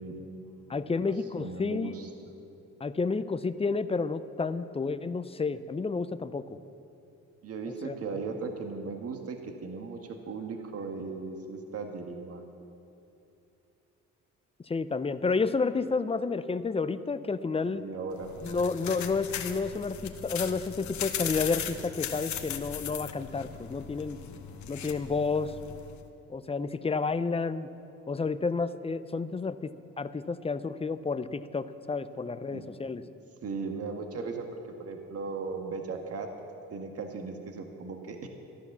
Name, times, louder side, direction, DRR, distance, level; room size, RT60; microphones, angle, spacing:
voice 1, 0.0-2.3 7.4-12.4 17.6-18.4 32.5-32.6 33.4-34.5 34.8-36.3 36.7-38.3, right 4 dB, 50° right, 4 dB, 1.5 m, -38 dB
voice 2, 0.7-2.0 2.8-6.4 7.8-7.9 14.7-17.8 18.4-24.2 24.7-25.5 26.3-27.7 28.1-33.0, left 4 dB, 20° left, 13 dB, 0.5 m, -30 dB
sound 1, 18.1-26.0, left 9 dB, 70° left, 1.1 m, -38 dB
13.0 x 11.5 x 7.2 m, 2.8 s
cardioid pair, 90°, 30 cm